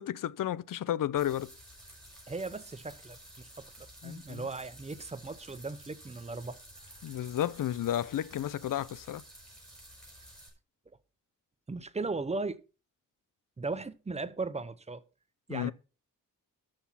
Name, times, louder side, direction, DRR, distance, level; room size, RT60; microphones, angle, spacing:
voice 1, 0.0-1.5 4.0-4.4 7.0-9.2 15.5-15.7, left 11 dB, 85° left, 0.6 m, -32 dB
sound 1, 1.2-10.5, right 1 dB, ahead, 6.4 m, -52 dB
voice 2, 2.3-3.7 4.0-6.6 6.9-7.0 11.7-12.6 13.6-15.0 15.5-15.7, right 3 dB, 20° right, 0.8 m, -37 dB
13.0 x 6.3 x 5.7 m
wide cardioid pair, 155°, 32 cm